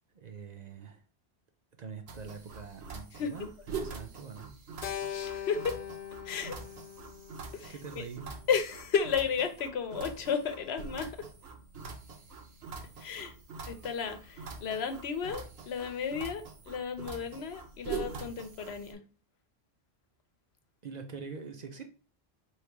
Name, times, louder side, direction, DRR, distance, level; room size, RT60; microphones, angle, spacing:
voice 1, 0.1-1.0 1.8-4.5 7.7-8.3 20.8-21.8, right 5 dB, 50° right, 0.6 m, -44 dB
sound 1, 2.1-18.9, right 5 dB, 75° right, 1.0 m, -44 dB
voice 2, 3.2-3.5 5.1-5.8 6.2-6.6 7.5-8.0 8.5-11.1 13.0-13.3 13.7-19.0, left 6 dB, 80° left, 0.9 m, -33 dB
Keyboard (musical), 4.8-9.2, left 10 dB, 65° left, 0.6 m, -42 dB
3.2 x 2.8 x 4.6 m
omnidirectional pair, 1.1 m